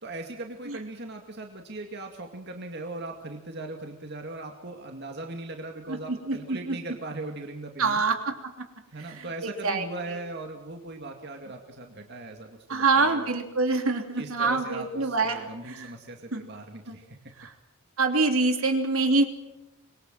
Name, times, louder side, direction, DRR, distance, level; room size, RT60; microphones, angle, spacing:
voice 1, 0.0-8.0 8.9-13.3 14.1-17.2, right 2 dB, 50° right, 3 dB, 2.2 m, -39 dB
voice 2, 5.9-6.7 7.8-8.2 9.0-9.8 12.7-15.9 16.3-16.4 16.9-17.0 17.4-17.5 18.0-19.2, right 3 dB, 75° right, 5 dB, 3.2 m, -25 dB
25.5 x 22.5 x 7.7 m, 0.98 s
head